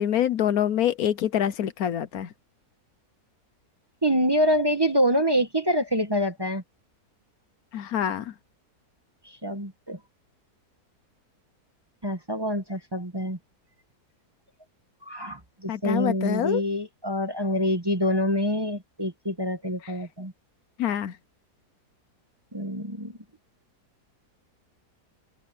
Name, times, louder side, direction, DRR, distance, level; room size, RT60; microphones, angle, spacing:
voice 1, 0.0-2.3 7.7-8.3 15.7-16.6 19.8-19.9 20.8-21.1, left 10 dB, 70° left, 1.2 m, -26 dB
voice 2, 4.0-6.6 9.4-10.0 12.0-13.4 15.1-20.3 22.5-23.2, equal, 15° right, 1.2 m, -26 dB
omnidirectional pair, 1.7 m